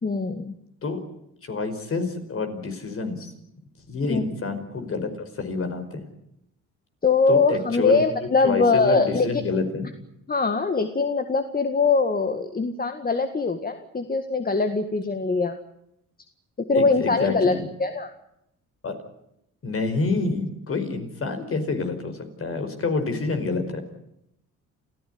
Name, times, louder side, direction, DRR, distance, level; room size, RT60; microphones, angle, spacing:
voice 1, 0.0-0.6 4.1-4.2 7.0-9.3 10.3-15.6 16.6-17.5 17.8-18.1, left 4 dB, 30° left, 7 dB, 1.9 m, -22 dB
voice 2, 1.4-3.3 3.9-6.0 7.3-8.0 8.4-9.9 16.7-17.7 18.8-18.9 19.6-23.8, left 3 dB, 45° left, 7 dB, 5.1 m, -28 dB
28.0 x 15.5 x 9.6 m, 0.81 s
cardioid pair, 90°, 30 cm